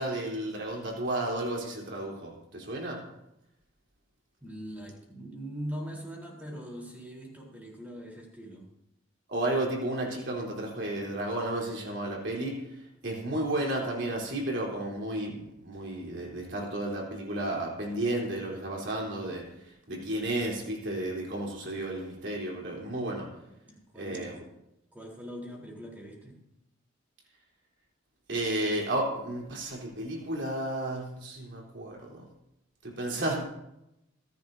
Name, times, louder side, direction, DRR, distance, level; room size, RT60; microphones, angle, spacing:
voice 1, 0.0-3.0 9.3-12.6 13.0-19.4 19.9-23.3 24.0-24.4 28.3-32.2 32.8-33.4, right 1 dB, 60° right, -2 dB, 3.8 m, -32 dB
voice 2, 4.4-8.7 23.7-24.4 24.9-26.4, equal, 10° right, -2 dB, 3.9 m, -41 dB
25.5 x 11.0 x 2.8 m, 0.86 s
head